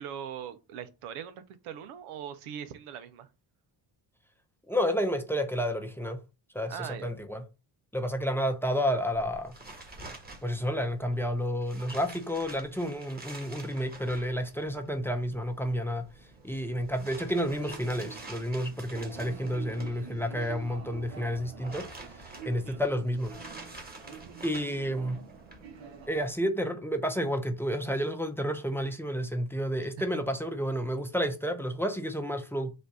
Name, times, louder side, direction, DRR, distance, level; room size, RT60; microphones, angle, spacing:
voice 1, 0.0-3.3 6.7-7.1 22.6-22.8 30.0-30.2, right 9 dB, 85° right, 0.8 m, -41 dB
voice 2, 4.7-6.2 6.5-7.4 7.9-9.6 10.4-16.1 16.4-21.9 22.2-23.4 24.4-25.2 26.1-32.8, equal, 5° left, 0.6 m, -30 dB
sound 1, 9.1-26.4, right 2 dB, 20° right, 1.4 m, -49 dB
sound 2, 14.0-26.1, right 6 dB, 65° right, 1.1 m, -48 dB
4.1 x 2.6 x 4.7 m
cardioid pair, 85°, 49 cm